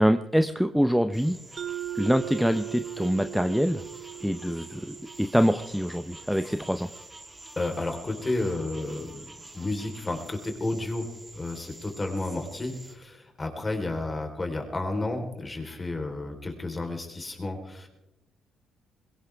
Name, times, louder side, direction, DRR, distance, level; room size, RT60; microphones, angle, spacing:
voice 1, 0.0-1.4 1.9-3.8 4.2-6.9, equal, ahead, 9 dB, 0.6 m, -25 dB
sound 1, 1.1-13.0, right 2 dB, 20° right, 2.8 m, -47 dB
Mallet percussion, 1.6-6.1, right 12 dB, 50° right, 0.9 m, -39 dB
voice 2, 7.6-9.2 9.5-11.1 11.3-17.9, left 2 dB, 25° left, 3 dB, 3.8 m, -31 dB
21.5 x 18.0 x 3.5 m, 0.93 s
cardioid pair, 90°, 0 cm